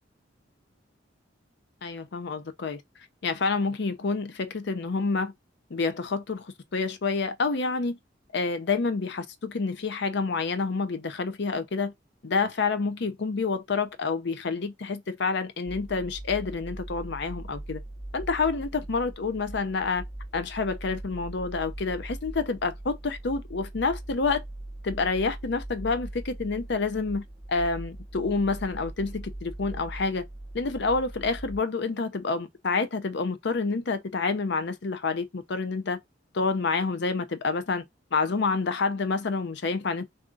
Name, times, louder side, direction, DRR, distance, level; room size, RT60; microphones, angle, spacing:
voice 1, 1.8-2.8 3.2-5.3 5.7-8.0 8.3-11.9 12.2-17.8 18.1-20.0 20.3-24.4 24.8-27.2 27.5-30.3 30.5-36.0 36.3-37.8 38.1-40.0, left 4 dB, 60° left, 0.6 m, -28 dB
sound 1, 15.7-31.6, right 1 dB, 15° left, 1.2 m, -40 dB
3.5 x 2.7 x 3.7 m
head